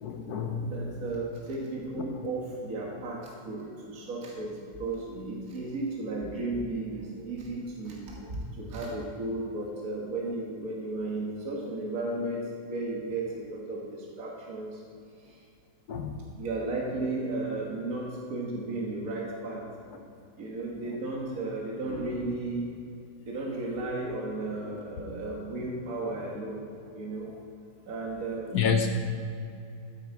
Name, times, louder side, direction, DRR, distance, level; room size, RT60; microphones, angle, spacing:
voice 1, 0.0-0.9 8.2-8.3 15.9-16.2 28.5-28.9, left 6 dB, 70° left, 4 dB, 1.3 m, -29 dB
voice 2, 0.6-14.8 15.3-15.4 16.4-19.7 20.4-22.7 23.3-26.6 26.9-27.3 27.9-28.6, right 2 dB, 60° right, -3 dB, 1.9 m, -34 dB
12.5 x 8.2 x 4.7 m, 2.5 s
omnidirectional pair, 1.8 m